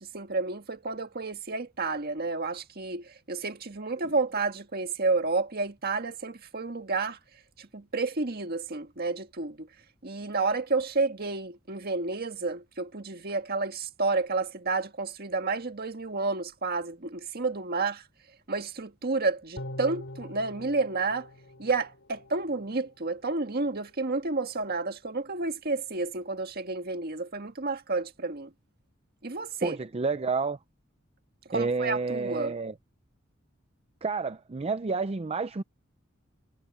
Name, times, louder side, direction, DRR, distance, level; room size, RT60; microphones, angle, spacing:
voice 1, 0.0-7.2 7.6-9.7 10.0-18.0 18.5-21.3 21.6-28.5 29.2-29.8 31.5-32.6, right 3 dB, 50° right, 1.7 m, -30 dB
sound 1, 19.6-22.9 23.3-23.4, left 1 dB, 65° left, 5.5 m, -43 dB
voice 2, 29.6-30.6 31.5-32.7 34.0-35.6, right 4 dB, 30° right, 0.5 m, -29 dB
head